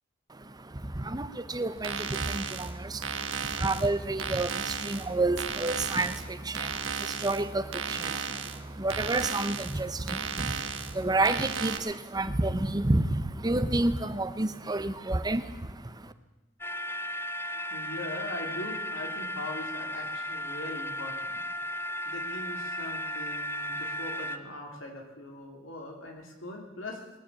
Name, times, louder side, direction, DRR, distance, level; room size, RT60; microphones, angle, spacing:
voice 1, 0.3-16.1, right 2 dB, 20° right, 11 dB, 0.8 m, -30 dB
sound 1, 1.8-11.8, right 6 dB, 80° right, 1.1 m, -35 dB
sound 2, 16.6-24.4, equal, 10° left, 0.5 m, -35 dB
voice 2, 17.5-21.4 22.0-27.0, left 2 dB, 85° left, 1 dB, 3.1 m, -41 dB
20.5 x 7.3 x 8.5 m, 1.1 s
head